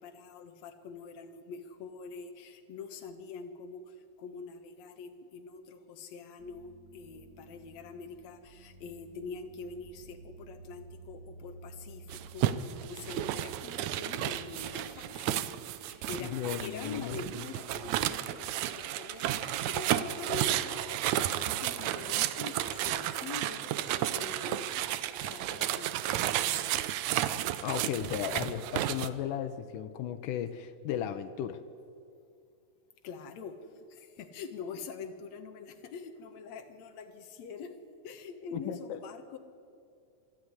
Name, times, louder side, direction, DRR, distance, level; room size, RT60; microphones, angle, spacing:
voice 1, 0.0-24.8 25.2-27.0 33.0-37.7 38.0-39.4, left 5 dB, 60° left, 6 dB, 2.5 m, -45 dB
sound 1, 6.4-14.2, right 4 dB, 40° right, 1.9 m, -52 dB
sound 2, 12.1-29.1, right 12 dB, 75° right, 2.0 m, -32 dB
voice 2, 16.2-17.2 27.6-31.6 38.5-39.0, left 10 dB, 90° left, 8 dB, 2.4 m, -35 dB
25.5 x 12.0 x 9.7 m, 2.4 s
omnidirectional pair, 3.6 m